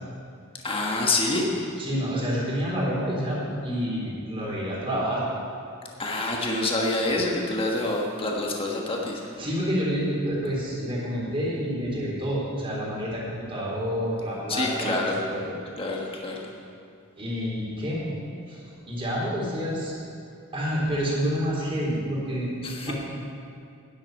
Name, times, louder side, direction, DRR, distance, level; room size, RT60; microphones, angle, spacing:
voice 1, 0.6-1.5 6.0-9.2 14.5-15.2 15.8-16.5 22.6-22.9, left 2 dB, 25° left, -1 dB, 1.4 m, -27 dB
voice 2, 1.8-5.2 9.4-15.0 15.3-15.4 17.2-18.1 18.5-18.6 18.9-19.9 20.5-22.5 22.9-23.0, equal, 25° right, -5 dB, 3.7 m, -28 dB
10.5 x 8.0 x 9.0 m, 2.4 s
head